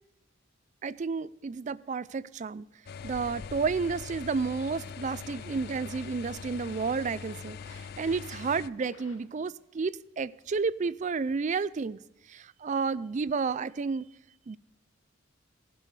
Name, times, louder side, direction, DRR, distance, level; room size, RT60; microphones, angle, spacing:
voice 1, 0.8-2.7 3.0-12.0 12.3-14.1 14.5-14.6, right 5 dB, 40° right, 19 dB, 0.4 m, -31 dB
sound 1, 2.9-8.7, left 6 dB, 50° left, 0.4 m, -42 dB
sound 2, 4.7-9.6, left 3 dB, 85° left, 2.1 m, -56 dB
15.0 x 11.5 x 3.3 m, 0.95 s
head